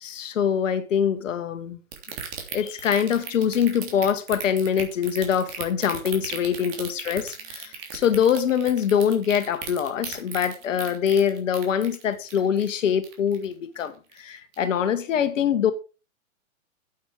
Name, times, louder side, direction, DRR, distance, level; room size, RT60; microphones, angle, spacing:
voice 1, 0.0-1.8 2.5-15.7, left 8 dB, 65° left, 1.7 m, -24 dB
sound 1, 1.9-13.5 13.8-14.2 14.5-14.6, right 8 dB, 45° right, 3.3 m, -36 dB
8.8 x 8.5 x 5.1 m
hypercardioid pair, 115°, 42 cm